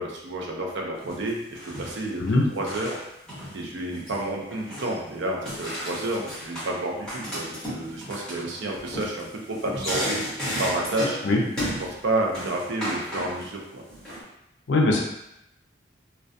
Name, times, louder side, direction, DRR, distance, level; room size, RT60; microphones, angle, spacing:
voice 1, 0.0-2.2 2.5-3.0 3.5-10.2 10.6-13.8, right 2 dB, 70° right, -1 dB, 0.5 m, -30 dB
sound 1, 1.0-1.3 1.5-3.0 3.3-4.3 4.5-5.0 5.4-6.8 7.0-11.3 11.6-11.9 12.3-13.5 13.9-14.2, equal, 5° left, 0.9 m, -33 dB
voice 2, 14.7-15.0, left 2 dB, 65° left, 0 dB, 0.4 m, -20 dB
2.2 x 2.2 x 2.5 m, 0.84 s
head